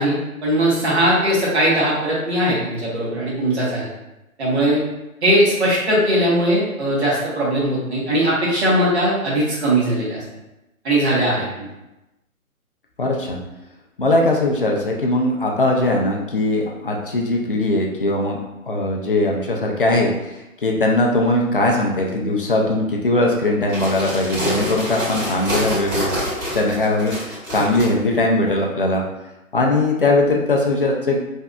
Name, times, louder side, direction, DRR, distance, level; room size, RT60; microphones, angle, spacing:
voice 1, 0.0-3.9 4.4-4.8 5.2-10.2 10.8-11.7, right 1 dB, 50° right, -6 dB, 1.4 m, -19 dB
voice 2, 13.0-13.4 14.0-18.4 18.7-26.1 26.5-29.0 29.5-31.2, left 2 dB, 40° left, -1 dB, 0.4 m, -20 dB
sound 1, 23.6-27.9, equal, 15° right, 1.4 m, -26 dB
3.3 x 2.6 x 2.3 m, 0.97 s
figure-of-eight pair, 135°, 43 cm